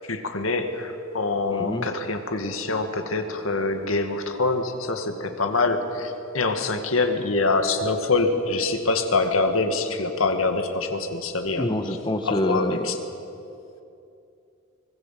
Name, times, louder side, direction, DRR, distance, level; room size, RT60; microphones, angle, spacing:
voice 1, 0.1-11.7 12.3-13.0, left 3 dB, 80° left, 6 dB, 2.0 m, -25 dB
voice 2, 1.5-1.9 11.6-12.9, left 1 dB, 25° left, 7 dB, 1.4 m, -26 dB
24.5 x 20.0 x 7.6 m, 2.7 s
head